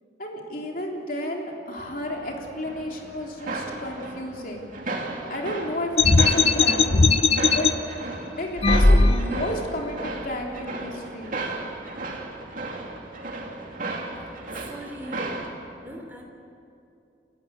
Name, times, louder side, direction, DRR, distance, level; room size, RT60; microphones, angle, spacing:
voice 1, 0.2-4.7 5.3-7.0 7.5-7.7 8.4-11.3, left 1 dB, 50° left, 0 dB, 3.3 m, -32 dB
sound 1, 1.9-15.5, right 2 dB, 50° right, 2.6 m, -35 dB
sound 2, 6.0-7.7 8.6-9.5, left 3 dB, 35° left, 0.7 m, -18 dB
voice 2, 14.5-15.4 15.8-16.2, right 1 dB, 10° right, 1 dB, 3.1 m, -39 dB
29.5 x 15.0 x 7.8 m, 2.6 s
head